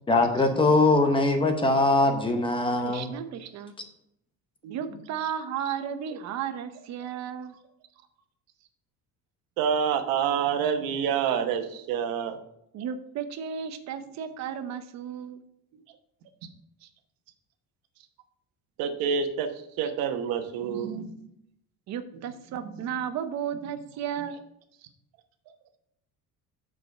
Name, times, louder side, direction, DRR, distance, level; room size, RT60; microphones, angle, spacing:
voice 1, 0.1-3.1, left 2 dB, 15° left, 5 dB, 0.8 m, -22 dB
voice 2, 2.8-3.7 4.7-7.5 12.7-15.4 21.9-24.5, right 8 dB, 55° right, 10 dB, 0.8 m, -34 dB
voice 3, 9.6-12.4 18.8-19.5 19.8-21.3 22.6-22.7, right 7 dB, 85° right, 7 dB, 1.1 m, -27 dB
6.7 x 4.9 x 6.6 m, 0.76 s
cardioid pair, 170°, 34 cm